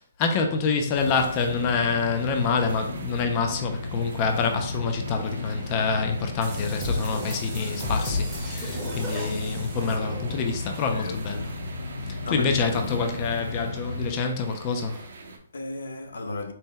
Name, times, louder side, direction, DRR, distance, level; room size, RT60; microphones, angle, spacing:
voice 1, 0.0-11.5 12.0-15.1, left 5 dB, 20° left, 0.3 m, -27 dB
sound 1, 0.9-14.1, left 3 dB, 65° left, 0.9 m, -35 dB
sound 2, 1.0-15.4, right 3 dB, 60° right, 0.7 m, -45 dB
sound 3, 6.4-10.6, left 1 dB, 10° right, 0.7 m, -33 dB
voice 2, 10.9-11.5 12.2-13.0 15.3-16.5, left 3 dB, 85° left, 0.6 m, -35 dB
4.1 x 2.1 x 3.6 m
hypercardioid pair, 175°, 0 cm